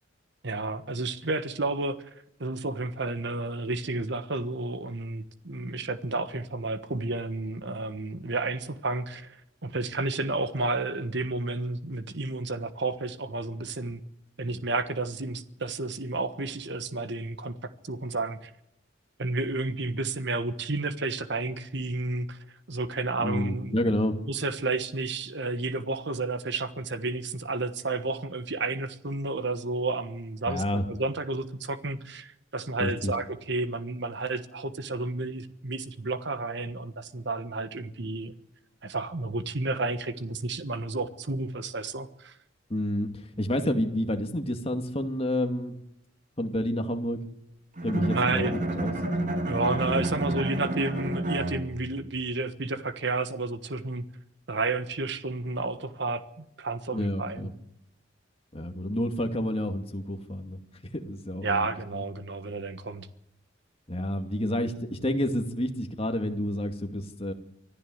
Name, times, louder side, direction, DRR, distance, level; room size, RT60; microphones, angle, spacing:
voice 1, 0.4-14.0 14.4-18.5 19.2-22.4 22.7-23.8 24.3-38.3 38.8-42.4 48.1-48.5 49.1-49.2 49.5-54.0 54.5-57.5 61.4-63.1, right 3 dB, 65° right, 12 dB, 1.4 m, -31 dB
voice 2, 23.2-24.2 30.5-30.8 32.8-33.1 42.7-45.8 46.4-47.2 47.8-48.9 56.9-57.5 58.5-60.6 60.9-61.7 61.9-62.0 63.9-67.3, left 1 dB, 30° left, 5 dB, 2.4 m, -29 dB
Bowed string instrument, 47.8-52.1, right 1 dB, 45° right, 3.3 m, -30 dB
25.0 x 15.0 x 8.0 m, 0.80 s
head